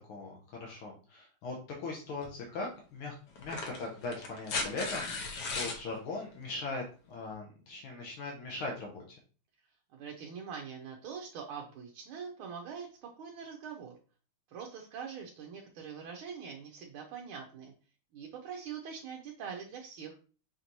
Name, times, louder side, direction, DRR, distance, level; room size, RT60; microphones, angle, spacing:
voice 1, 0.1-9.2, left 3 dB, 85° left, -1 dB, 1.6 m, -40 dB
sound 1, 2.2-2.4 3.4-5.8 7.3-7.4, left 3 dB, 60° left, 1.2 m, -36 dB
voice 2, 9.9-13.9 14.5-17.7 18.1-20.2, right 6 dB, 85° right, 1 dB, 1.5 m, -43 dB
5.7 x 2.6 x 2.9 m, 0.38 s
omnidirectional pair, 2.3 m